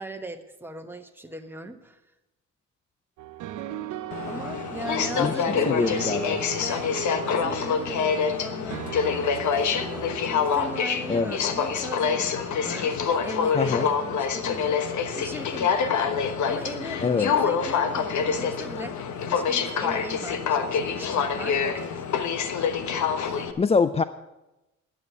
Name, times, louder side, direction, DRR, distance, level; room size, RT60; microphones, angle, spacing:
voice 1, 0.0-2.0 4.2-6.2 6.5-6.9 7.2-8.9 9.5-22.0, right 1 dB, 5° right, 5 dB, 1.3 m, -39 dB
sound 1, 3.2-11.8, right 11 dB, 75° right, 0.8 m, -38 dB
Aircraft, 4.1-23.5, left 6 dB, 70° left, 1.2 m, -26 dB
voice 2, 5.7-6.4 11.1-11.3 13.5-13.9 17.0-17.3 23.6-24.0, left 5 dB, 20° left, 14 dB, 0.4 m, -24 dB
12.0 x 7.9 x 8.2 m, 0.98 s
cardioid pair, 90°, 30 cm